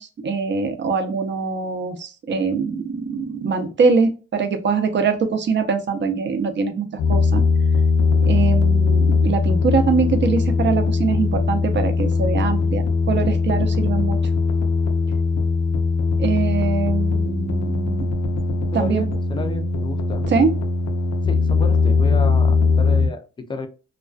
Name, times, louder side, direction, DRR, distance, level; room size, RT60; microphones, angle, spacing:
voice 1, 0.0-7.4 8.2-14.2 16.2-18.1 18.7-19.0 20.3-20.5, right 5 dB, 40° right, 7 dB, 0.6 m, -23 dB
sound 1, 7.0-23.1, left 4 dB, 65° left, 0.5 m, -20 dB
voice 2, 18.7-20.2 21.3-23.7, left 3 dB, 15° left, 6 dB, 0.4 m, -31 dB
2.3 x 2.3 x 2.4 m, 0.34 s
cardioid pair, 90°, 30 cm